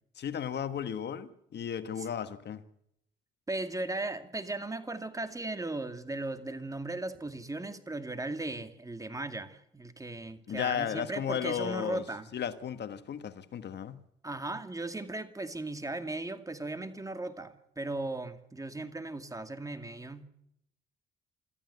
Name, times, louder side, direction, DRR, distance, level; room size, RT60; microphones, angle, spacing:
voice 1, 0.2-2.6 10.5-12.0 12.3-14.0, left 8 dB, 60° left, 1.5 m, -34 dB
voice 2, 3.5-12.3 14.2-20.3, right 2 dB, 15° right, 2.3 m, -37 dB
26.0 x 14.0 x 8.2 m
cardioid pair, 90°, 20 cm